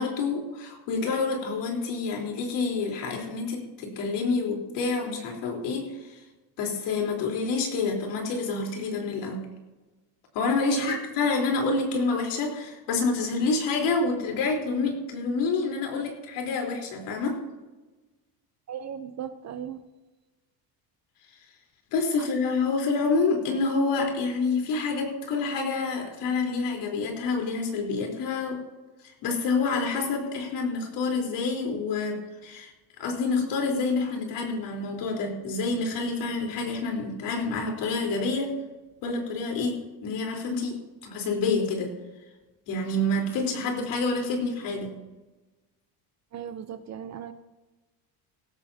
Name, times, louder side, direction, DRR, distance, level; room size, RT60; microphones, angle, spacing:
voice 1, 0.0-6.2 6.6-9.4 10.3-17.4 21.9-28.6 29.0-32.7 33.0-38.5 39.0-39.7 40.0-40.8 41.0-41.9 42.7-44.9, left 3 dB, 70° left, 1 dB, 4.1 m, -28 dB
voice 2, 18.7-19.8 22.2-22.3 46.3-47.3, right 9 dB, 40° right, 10 dB, 0.8 m, -37 dB
17.0 x 15.0 x 2.9 m, 1.1 s
cardioid pair, 140°, 43 cm